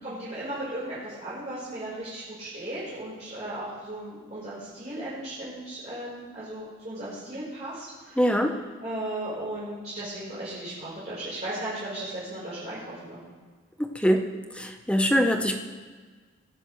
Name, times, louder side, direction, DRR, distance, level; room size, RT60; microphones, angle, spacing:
voice 1, 0.0-8.4 8.8-13.2, right 1 dB, 35° right, -10 dB, 4.4 m, -36 dB
voice 2, 8.2-8.5 13.8-14.2 14.6-15.6, equal, 5° left, 4 dB, 0.9 m, -23 dB
22.5 x 9.6 x 3.2 m, 1.5 s
head